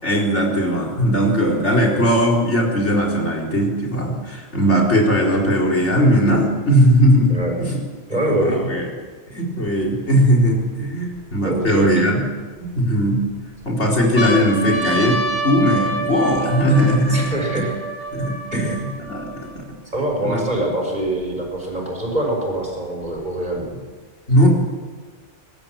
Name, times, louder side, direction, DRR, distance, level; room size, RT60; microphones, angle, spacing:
voice 1, 0.0-7.8 8.4-8.9 9.3-12.2 12.7-13.2 13.6-17.6 18.1-19.7 20.2-20.4 24.3-24.5, equal, 75° left, 1 dB, 4.6 m, -18 dB
voice 2, 7.3-7.6 8.1-8.6 11.4-12.1 17.1-17.7 18.5-18.8 19.9-23.7, right 1 dB, 40° right, 0 dB, 6.4 m, -24 dB
sound 1, 10.7-11.7 12.4-13.2 13.6-13.7 14.0-19.6 20.3-20.4 20.6-21.6 22.5-23.6, right 1 dB, 20° right, 5.3 m, -28 dB
23.5 x 19.5 x 7.4 m, 1.4 s
omnidirectional pair, 1.2 m